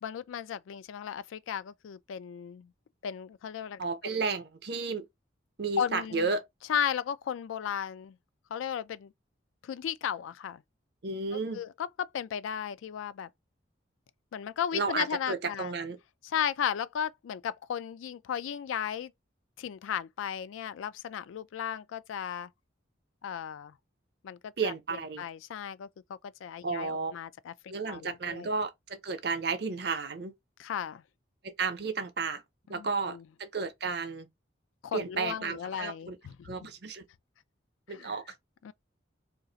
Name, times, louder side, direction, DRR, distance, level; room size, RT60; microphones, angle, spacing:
voice 1, 0.0-2.7 3.0-4.3 5.8-6.3 6.7-8.2 8.5-9.1 9.6-10.6 11.5-13.3 14.3-15.7 16.3-19.1 19.6-22.5 23.2-23.7 24.2-28.5 30.6-31.0 32.7-33.2 34.8-36.3 37.9-38.2 38.6-38.7, left 8 dB, 85° left, 0.3 m, -35 dB
voice 2, 3.8-5.1 5.6-6.4 11.0-11.6 14.7-16.0 24.6-25.2 26.6-27.1 27.7-30.3 31.4-32.4 32.7-34.3 34.9-36.2 36.4-37.0 37.9-38.2, right 4 dB, 55° right, 0.6 m, -33 dB
2.5 x 2.4 x 3.9 m
head